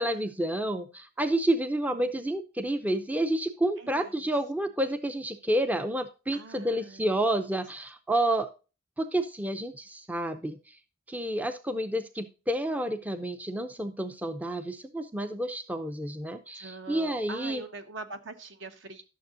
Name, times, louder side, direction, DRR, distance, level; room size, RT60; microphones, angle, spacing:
voice 1, 0.0-8.5 9.0-10.8 11.1-17.6, right 1 dB, 10° right, 9 dB, 0.4 m, -29 dB
voice 2, 3.8-4.1 6.3-7.1 16.5-19.0, right 3 dB, 65° right, 8 dB, 1.2 m, -43 dB
12.0 x 6.7 x 2.6 m, 0.33 s
head